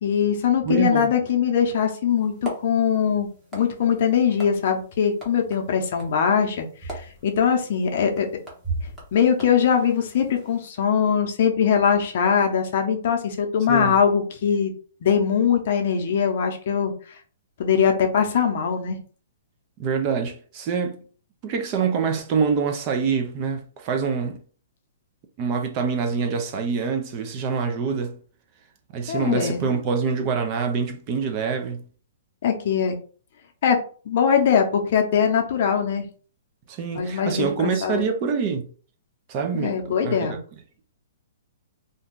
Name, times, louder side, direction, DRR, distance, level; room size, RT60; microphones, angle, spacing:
voice 1, 0.0-8.3 9.1-14.7 15.0-17.2 17.6-19.0 29.1-29.7 32.4-33.0 33.6-33.8 34.0-36.1 36.9-38.0 39.5-40.4, left 7 dB, 50° left, 0.6 m, -22 dB
voice 2, 0.6-1.1 13.7-14.0 19.8-21.0 21.4-24.4 25.4-28.2 28.9-31.8 36.7-38.7 39.3-40.4, right 5 dB, 30° right, 0.5 m, -25 dB
sound 1, 2.1-10.7, right 2 dB, 10° right, 1.0 m, -39 dB
2.5 x 2.3 x 3.6 m
hypercardioid pair, 160°, 0 cm